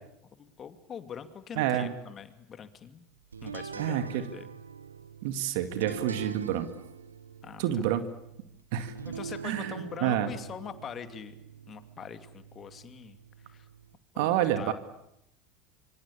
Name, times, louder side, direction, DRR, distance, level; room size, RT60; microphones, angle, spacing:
voice 1, 0.3-3.0 3.4-4.5 7.4-7.9 9.0-11.3 11.7-13.7 14.1-14.7, left 7 dB, 35° left, 10 dB, 2.6 m, -43 dB
voice 2, 1.6-1.9 3.8-4.3 5.2-6.7 7.6-8.0 8.7-8.9 9.4-9.7 10.0-10.3 14.2-14.7, right 11 dB, 65° right, 10 dB, 2.1 m, -28 dB
sound 1, 3.3-14.0, right 6 dB, 90° right, 1.3 m, -44 dB
26.0 x 24.5 x 8.6 m, 0.80 s
hypercardioid pair, 80°, 0 cm